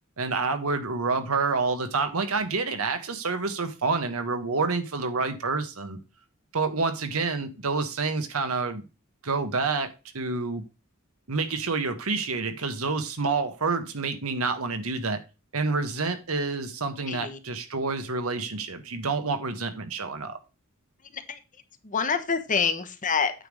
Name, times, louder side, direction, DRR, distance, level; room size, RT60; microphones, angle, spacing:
voice 1, 0.2-6.0 6.5-8.8 9.2-10.6 11.3-15.2 15.5-20.4, right 4 dB, 85° right, 8 dB, 1.3 m, -28 dB
voice 2, 17.1-17.4 21.0-21.4 21.8-23.3, left 5 dB, 40° left, 10 dB, 1.0 m, -27 dB
9.0 x 3.5 x 6.3 m, 0.30 s
head